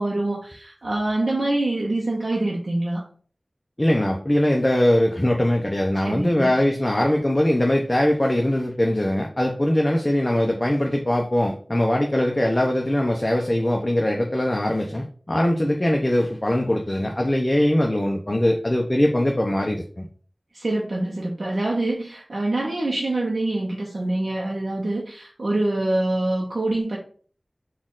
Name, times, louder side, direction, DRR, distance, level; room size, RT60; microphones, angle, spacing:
voice 1, 0.0-3.0 6.0-6.5 20.5-27.0, right 2 dB, 70° right, -3 dB, 0.7 m, -25 dB
voice 2, 3.8-20.1, left 1 dB, 30° left, 1 dB, 0.6 m, -21 dB
4.2 x 2.4 x 3.6 m, 0.44 s
wide cardioid pair, 45°, 0 cm